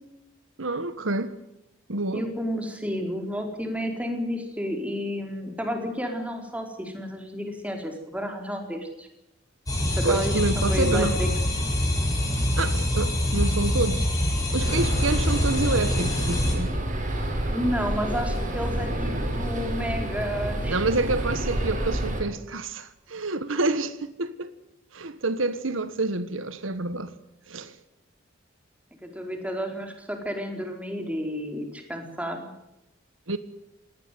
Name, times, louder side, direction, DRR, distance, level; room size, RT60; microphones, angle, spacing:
voice 1, 0.6-1.4 1.9-2.3 10.0-11.2 12.6-14.0 14.5-16.7 20.7-24.5 24.9-27.1 27.5-27.7 33.3-33.4, right 2 dB, 85° right, 1.6 m, -28 dB
voice 2, 2.1-9.1 9.9-11.3 17.5-20.8 29.0-32.5, equal, 5° right, 4.6 m, -31 dB
sound 1, 9.7-16.5, left 1 dB, 20° left, 7.5 m, -25 dB
sound 2, 14.6-22.2, right 1 dB, 40° right, 7.4 m, -29 dB
19.0 x 18.5 x 9.4 m
head